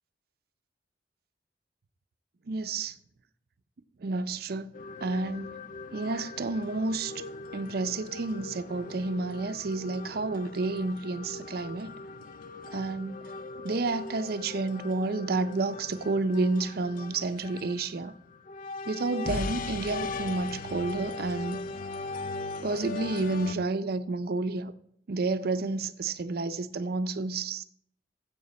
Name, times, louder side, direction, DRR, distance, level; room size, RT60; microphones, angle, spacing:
voice 1, 2.5-3.0 4.0-4.7 5.0-5.6 5.9-7.2 7.5-12.0 12.7-13.3 13.6-18.1 18.9-21.6 22.6-24.7 25.1-27.6, right 3 dB, 60° right, 0.5 m, -30 dB
sound 1, 4.7-23.6, left 3 dB, 50° left, 0.4 m, -39 dB
14.5 x 7.7 x 4.1 m
head